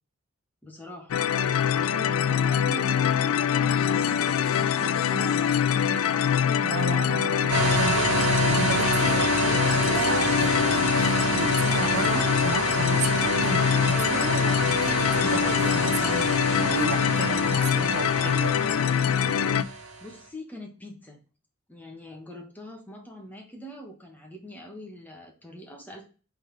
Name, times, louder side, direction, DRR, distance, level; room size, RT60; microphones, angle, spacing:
voice 1, 0.6-1.2 1.7-5.7 19.5-21.2 21.7-26.1, equal, 10° left, 1.2 m, -43 dB
sound 1, 1.1-19.6, left 8 dB, 75° left, 0.3 m, -24 dB
voice 2, 6.6-18.6, right 5 dB, 65° right, 0.5 m, -34 dB
sound 2, 7.5-20.1, right 3 dB, 80° right, 1.2 m, -29 dB
4.3 x 3.8 x 3.2 m
head